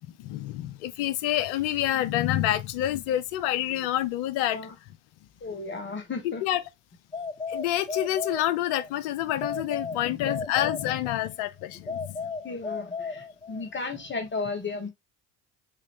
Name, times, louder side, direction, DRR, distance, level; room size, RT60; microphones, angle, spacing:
voice 1, 0.0-4.6 6.4-6.6 7.5-12.3, left 13 dB, 75° left, 0.6 m, -28 dB
voice 2, 5.4-6.4 10.2-10.3 12.4-14.9, left 4 dB, 30° left, 1.3 m, -34 dB
sound 1, 7.1-8.9 9.4-11.3 11.9-13.7, left 4 dB, 15° left, 0.4 m, -35 dB
3.7 x 3.0 x 3.5 m
hypercardioid pair, 55°, 36 cm